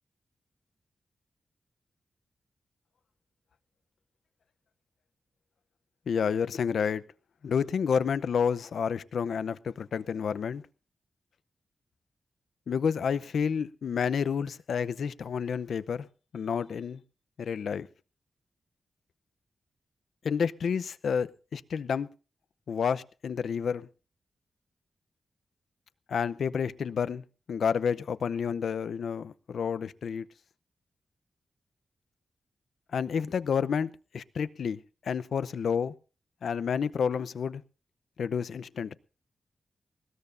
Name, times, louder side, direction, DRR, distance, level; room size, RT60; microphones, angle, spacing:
voice 1, 6.1-7.0 7.4-10.6 12.7-16.1 16.3-17.0 17.4-17.9 20.2-22.1 22.7-23.9 26.1-30.3 32.9-35.9 36.4-37.6 38.2-39.0, left 6 dB, 75° left, 15 dB, 0.7 m, -30 dB
20.5 x 18.0 x 2.6 m, 0.36 s
wide cardioid pair, 150°, 0 cm